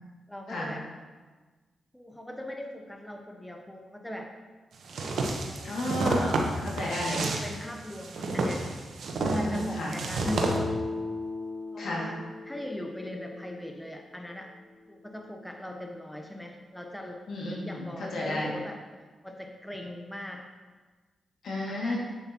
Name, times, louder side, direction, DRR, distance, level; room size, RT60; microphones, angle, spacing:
voice 1, 0.3-0.8 1.9-4.3 5.0-6.0 7.2-8.6 9.4-10.8 11.7-12.2 12.4-14.5 14.9-17.2 17.6-20.5 21.7-22.0, left 1 dB, 5° left, 2 dB, 0.8 m, -40 dB
sound 1, 4.9-10.6, right 3 dB, 75° right, 0.9 m, -30 dB
voice 2, 5.6-7.2 9.2-9.9 11.8-12.1 17.3-18.5 21.4-22.0, left 1 dB, 75° left, -4 dB, 2.1 m, -32 dB
sound 2, 10.2-13.8, left 2 dB, 40° left, 1.4 m, -36 dB
8.0 x 7.0 x 2.9 m, 1.3 s
cardioid pair, 60°, 0 cm